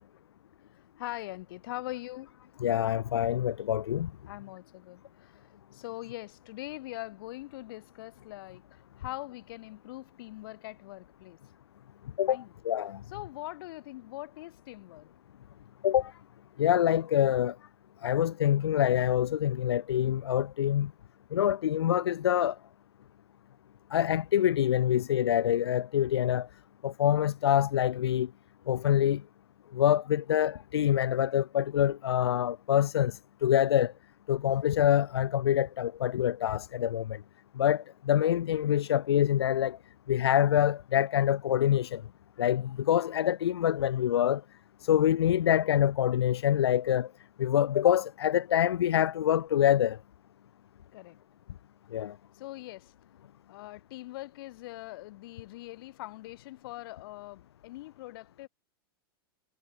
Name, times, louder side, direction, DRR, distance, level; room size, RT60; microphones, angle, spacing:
voice 1, 1.0-2.3 4.3-5.5 5.7-11.4 12.3-12.5 13.1-15.1 50.9-51.2 52.3-52.9 53.5-58.5, left 18 dB, 65° left, 4.8 m, -42 dB
voice 2, 2.6-4.1 12.2-13.0 15.8-16.1 16.6-17.6 18.0-20.9 21.3-22.6 23.9-26.5 26.8-28.3 28.7-29.2 29.7-33.9 34.3-37.2 37.6-39.8 40.1-42.0 42.4-44.4 44.8-47.1 47.4-50.0 51.9-52.2, left 11 dB, 85° left, 0.7 m, -26 dB
hypercardioid pair, 115°, 13 cm